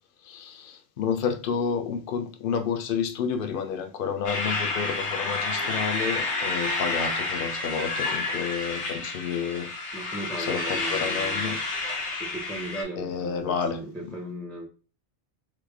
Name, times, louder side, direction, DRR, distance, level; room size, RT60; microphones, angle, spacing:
voice 1, 0.2-9.7 10.4-11.6 13.0-14.1, left 6 dB, 60° left, 0.6 m, -30 dB
sound 1, 4.2-12.8, left 3 dB, 80° left, 1.3 m, -30 dB
voice 2, 9.9-11.6 12.2-14.7, right 1 dB, ahead, 0.4 m, -37 dB
3.1 x 2.4 x 3.5 m
omnidirectional pair, 1.1 m